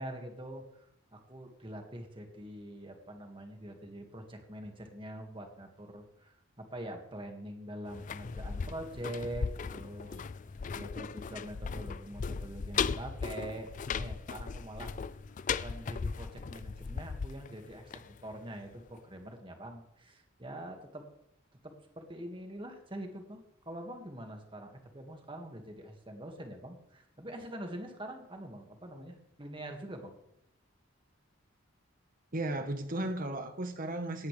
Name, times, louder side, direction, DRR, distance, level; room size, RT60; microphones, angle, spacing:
voice 1, 0.0-10.2 10.7-14.9 15.5-21.0 21.6-30.2, right 1 dB, 25° right, 4 dB, 1.9 m, -44 dB
sound 1, 7.9-18.7 19.0-19.1, left 5 dB, 40° left, 0.3 m, -37 dB
voice 2, 32.3-34.3, right 1 dB, 45° right, 7 dB, 1.2 m, -35 dB
17.5 x 10.5 x 3.4 m, 0.81 s
head